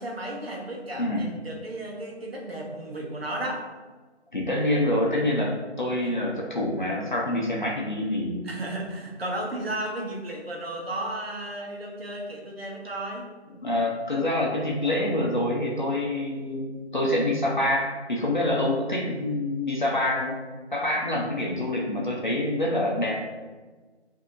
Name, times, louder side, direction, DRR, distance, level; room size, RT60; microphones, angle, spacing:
voice 1, 0.0-3.7 6.0-6.1 8.4-13.3 19.1-19.2 21.6-21.8, right 1 dB, 60° right, 0 dB, 1.1 m, -34 dB
voice 2, 4.3-8.4 13.6-20.4 20.7-23.3, left 1 dB, 45° left, -3 dB, 0.7 m, -26 dB
7.0 x 2.8 x 2.5 m, 1.3 s
figure-of-eight pair, 165°, 35 cm